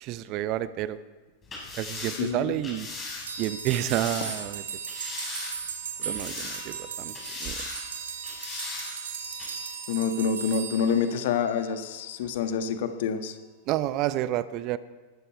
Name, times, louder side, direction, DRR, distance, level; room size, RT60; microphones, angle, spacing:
voice 1, 0.0-1.0 1.8-2.9 3.4-4.6 6.0-7.1 7.4-7.6 13.7-14.8, right 14 dB, 40° right, 15 dB, 0.7 m, -29 dB
sound 1, 1.4-4.4 4.9-5.7 6.0-6.8 7.1-7.8 8.2-8.9 9.4-9.5, left 3 dB, 20° left, 5.9 m, -38 dB
voice 2, 2.2-2.5 9.9-13.3, left 6 dB, 55° left, 8 dB, 1.3 m, -27 dB
sound 2, 3.2-11.7, right 6 dB, 65° right, 1.9 m, -37 dB
19.0 x 12.5 x 4.6 m, 1.3 s
figure-of-eight pair, 90°, 0 cm